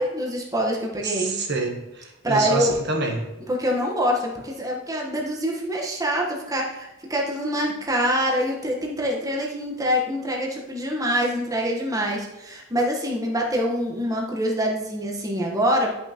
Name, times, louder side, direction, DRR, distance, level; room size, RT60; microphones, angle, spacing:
voice 1, 0.0-1.4 2.2-2.7 3.5-15.9, equal, 15° right, -1 dB, 1.1 m, -25 dB
voice 2, 1.0-3.2, right 3 dB, 55° right, 1 dB, 1.1 m, -27 dB
11.0 x 5.7 x 2.9 m, 1.0 s
head